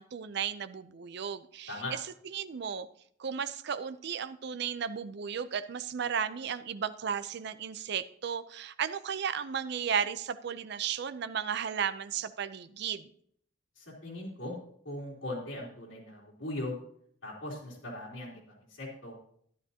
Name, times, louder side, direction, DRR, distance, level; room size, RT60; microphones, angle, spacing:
voice 1, 0.0-2.0 2.2-2.9 3.2-13.1, right 7 dB, 60° right, 13 dB, 0.5 m, -34 dB
voice 2, 13.8-14.6 14.8-16.8 17.2-19.1, left 1 dB, 90° left, -5 dB, 3.2 m, -39 dB
12.5 x 10.5 x 2.8 m, 0.64 s
head